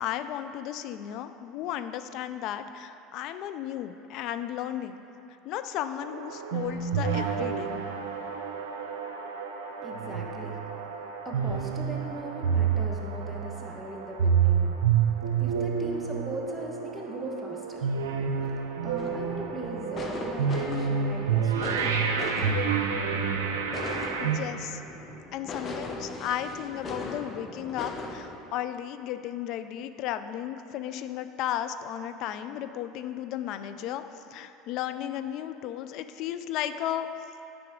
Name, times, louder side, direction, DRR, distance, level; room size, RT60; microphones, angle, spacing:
voice 1, 0.0-5.0 5.4-7.7 24.2-24.8 25.3-34.0 34.3-37.1, left 11 dB, 60° left, 10 dB, 0.4 m, -34 dB
sound 1, 6.0-24.4, right 6 dB, 85° right, 0.6 m, -29 dB
voice 2, 9.8-10.6 10.9-14.8 15.4-17.9 18.4-22.1, right 1 dB, 10° right, -1 dB, 1.2 m, -39 dB
sound 2, 19.0-28.4, left 3 dB, 35° left, 0.9 m, -39 dB
9.4 x 5.9 x 3.7 m, 2.8 s
hypercardioid pair, 85°, 0 cm